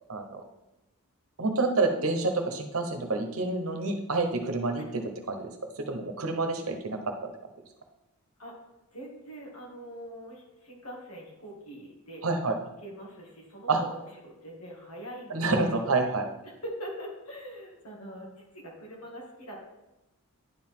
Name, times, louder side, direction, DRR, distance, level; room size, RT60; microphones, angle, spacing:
voice 1, 0.1-0.4 1.4-5.5 5.9-7.0 12.2-12.6 13.7-13.8 15.3-16.2, right 3 dB, 75° right, 5 dB, 1.0 m, -28 dB
voice 2, 8.9-12.2 12.8-16.1 16.4-19.7, right 1 dB, 90° left, -2 dB, 2.2 m, -43 dB
10.0 x 4.7 x 3.7 m, 0.96 s
head